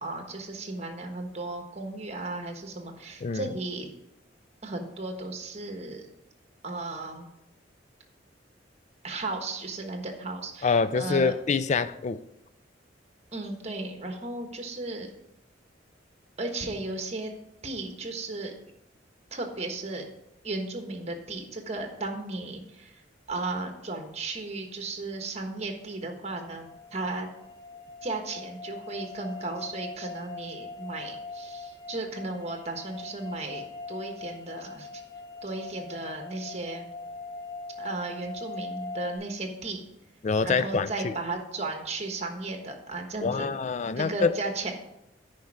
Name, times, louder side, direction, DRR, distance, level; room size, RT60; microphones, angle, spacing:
voice 1, 0.0-3.9 4.6-6.1 6.6-7.3 9.0-11.3 13.3-15.1 16.4-17.3 17.6-18.5 19.3-20.0 20.4-27.3 28.0-35.0 35.4-36.9 37.8-39.8 40.4-43.5 43.9-44.7, right 2 dB, 35° right, 1.3 m, -35 dB
voice 2, 10.6-12.2 40.2-41.1 43.2-44.3, left 5 dB, 40° left, 0.4 m, -26 dB
sound 1, 26.0-39.2, left 3 dB, 20° left, 1.6 m, -41 dB
9.4 x 5.3 x 4.8 m
head